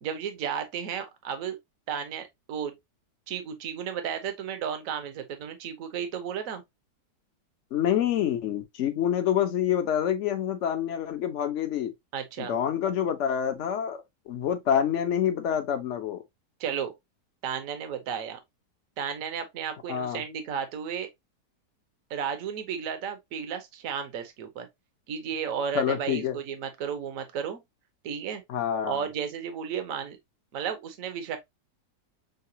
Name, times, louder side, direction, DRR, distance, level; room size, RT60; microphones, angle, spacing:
voice 1, 0.0-1.6 1.9-2.8 3.3-6.6 12.1-12.6 16.6-16.9 17.4-18.4 19.0-21.1 22.1-24.7 25.1-27.6 28.0-28.4 28.8-30.2 30.5-31.4, right 7 dB, 55° right, 1.1 m, -33 dB
voice 2, 7.7-11.9 12.4-16.2 19.9-20.2 25.7-26.4 28.5-29.0, left 9 dB, 55° left, 0.9 m, -27 dB
6.6 x 2.3 x 2.7 m
omnidirectional pair, 1.9 m